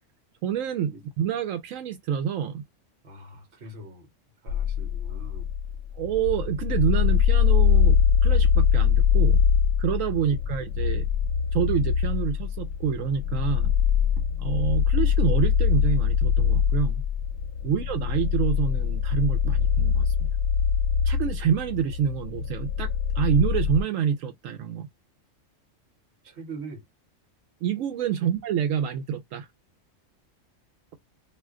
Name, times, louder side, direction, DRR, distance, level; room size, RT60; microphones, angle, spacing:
voice 1, 0.4-2.6 5.9-9.4 9.8-11.1 11.5-13.7 14.4-17.0 17.6-20.1 21.0-24.9 27.6-29.5, right 8 dB, 85° right, 1.0 m, -27 dB
voice 2, 3.0-4.1 4.4-5.5 26.2-26.8 28.2-28.3, right 3 dB, 60° right, 1.2 m, -42 dB
sound 1, 4.5-23.8, left 7 dB, 65° left, 0.9 m, -23 dB
2.5 x 2.2 x 3.5 m
omnidirectional pair, 1.3 m